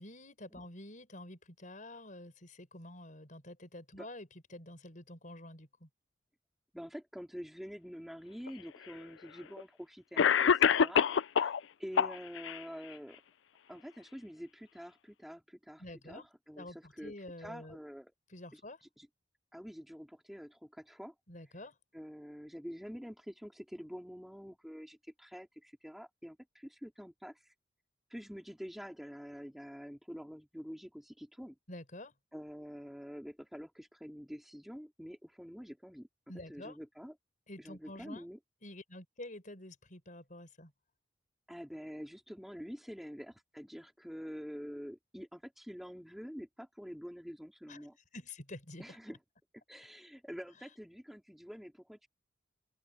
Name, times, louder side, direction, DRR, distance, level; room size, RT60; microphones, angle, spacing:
voice 1, 0.0-5.9 15.8-16.3 16.6-17.8 18.3-18.8 21.3-21.7 31.7-32.1 36.3-36.8 37.5-38.3 38.6-40.7 47.7-47.9 48.1-48.8, left 1 dB, 45° left, 5.8 m, -48 dB
voice 2, 6.7-13.2 13.7-18.1 18.5-18.6 19.0-19.1 19.5-21.1 21.9-27.5 28.1-31.6 32.3-36.1 36.5-37.1 37.6-38.4 41.5-48.0 48.8-49.2 49.7-52.1, equal, ahead, 2.9 m, -47 dB
Cough, 8.5-8.6 9.6-9.7 10.2-11.6 12.0-12.6, left 7 dB, 80° left, 0.4 m, -26 dB
open air
head